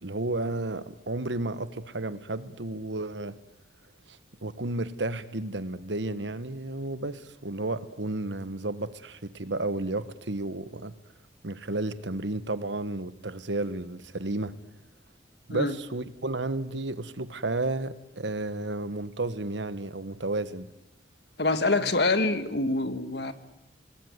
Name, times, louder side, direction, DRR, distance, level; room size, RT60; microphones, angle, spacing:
voice 1, 0.0-3.4 4.1-10.9 11.4-14.6 15.5-20.7 21.8-21.9, right 2 dB, 85° right, 13 dB, 1.3 m, -32 dB
voice 2, 21.4-23.3, left 2 dB, 65° left, 10 dB, 1.8 m, -25 dB
27.0 x 19.5 x 9.5 m, 0.90 s
head